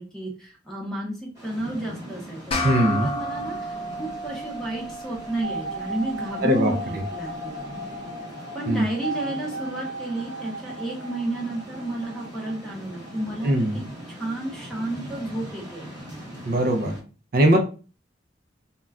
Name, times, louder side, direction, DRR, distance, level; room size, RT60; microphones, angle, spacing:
voice 1, 0.0-3.6 3.9-7.7 8.5-13.8 14.1-15.9, right 1 dB, 5° left, -2 dB, 0.7 m, -32 dB
sound 1, 1.3-17.0, equal, 20° right, 1.0 m, -41 dB
sound 2, 2.5-7.3, left 1 dB, 30° left, 0.4 m, -33 dB
voice 2, 2.6-3.1 6.4-7.0 8.7-8.9 13.4-13.8 16.5-16.9 17.3-17.6, right 1 dB, 55° right, 4 dB, 0.4 m, -21 dB
sound 3, 5.4-13.9 14.2-14.3 14.5-14.6, right 2 dB, 90° left, 0.6 m, -36 dB
2.2 x 2.1 x 3.5 m, 0.35 s
head